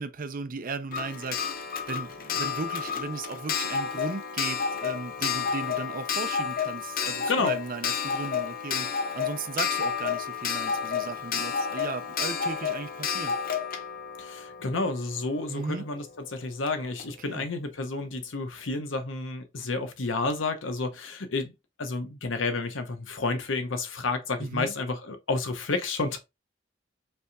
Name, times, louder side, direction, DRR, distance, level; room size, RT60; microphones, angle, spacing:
voice 1, 0.0-1.4 1.9-13.4 15.5-15.9 17.3-17.5 24.4-24.7, right 4 dB, 50° right, 0.5 m, -36 dB
Clock, 0.9-15.5 16.7-16.8 17.0-17.1, left 7 dB, 50° left, 0.7 m, -31 dB
voice 2, 14.2-21.5 21.8-26.2, left 3 dB, 85° left, 0.9 m, -30 dB
5.3 x 3.4 x 2.3 m
head